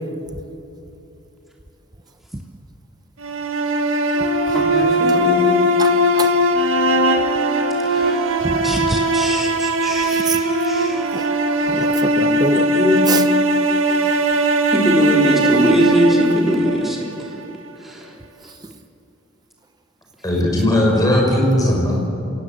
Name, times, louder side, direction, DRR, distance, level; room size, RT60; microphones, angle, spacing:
sound 1, 3.2-17.3, right 1 dB, 85° right, 1.8 m, -19 dB
voice 1, 4.5-5.6 7.9-8.3 8.6-11.1 12.6-13.2 14.7-17.1 17.8-18.1, equal, ahead, -2 dB, 3.3 m, -21 dB
voice 2, 5.8-6.3 8.5-9.0 10.1-10.4 11.1-11.3 11.7-12.6 13.1-13.2 18.6-18.7, right 3 dB, 20° right, 9 dB, 1.0 m, -25 dB
voice 3, 20.2-22.1, left 1 dB, 20° left, -2 dB, 6.4 m, -17 dB
26.5 x 18.5 x 8.3 m, 2.8 s
head